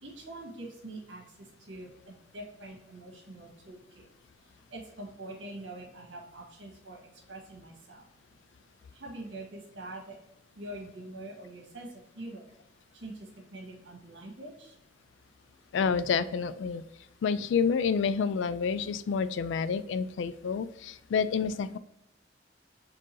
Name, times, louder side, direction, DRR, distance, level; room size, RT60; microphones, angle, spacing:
voice 1, 0.0-4.0 4.7-7.0 7.3-8.0 8.9-10.2 10.5-12.4 12.9-14.7, right 1 dB, 75° right, 0 dB, 1.5 m, -44 dB
voice 2, 15.7-16.8 17.2-21.8, left 6 dB, 75° left, 14 dB, 0.3 m, -29 dB
4.5 x 3.7 x 3.1 m, 0.82 s
head